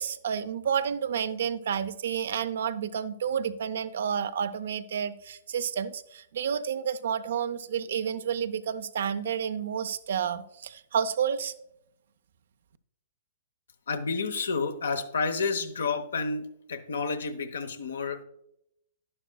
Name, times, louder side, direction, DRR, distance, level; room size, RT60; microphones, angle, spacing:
voice 1, 0.0-11.5, right 8 dB, 65° right, 0.6 m, -30 dB
voice 2, 13.9-18.2, left 4 dB, 70° left, 0.9 m, -30 dB
11.0 x 10.5 x 2.3 m
figure-of-eight pair, 115°, 0 cm